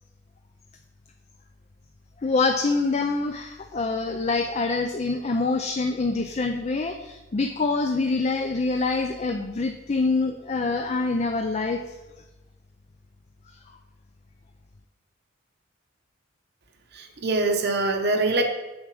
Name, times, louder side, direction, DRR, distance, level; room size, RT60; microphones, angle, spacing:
voice 1, 2.2-11.8, left 3 dB, 35° left, 6 dB, 0.4 m, -25 dB
voice 2, 16.9-18.4, right 2 dB, 55° right, 4 dB, 1.0 m, -24 dB
7.2 x 7.0 x 4.8 m, 1.1 s
head